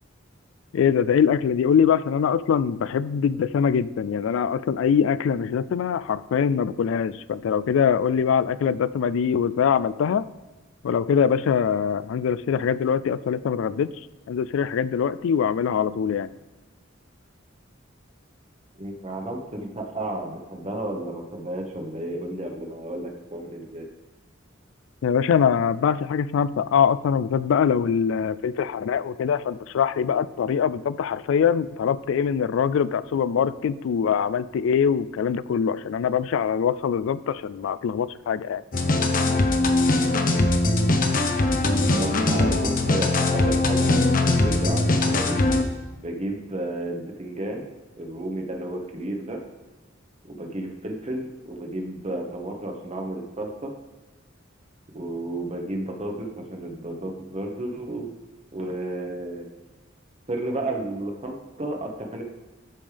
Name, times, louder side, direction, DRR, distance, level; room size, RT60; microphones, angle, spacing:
voice 1, 0.7-10.2 10.8-13.9 14.3-16.3 25.0-38.6, left 7 dB, 75° left, 17 dB, 0.3 m, -23 dB
voice 2, 18.8-23.9 41.9-45.4 46.0-47.7 48.0-49.4 50.2-53.7 54.9-58.1 58.5-59.5 60.3-62.2, right 1 dB, 35° right, 2 dB, 1.1 m, -32 dB
sound 1, 38.7-45.6, left 2 dB, 45° left, 0.8 m, -21 dB
13.0 x 5.3 x 3.4 m, 1.2 s
head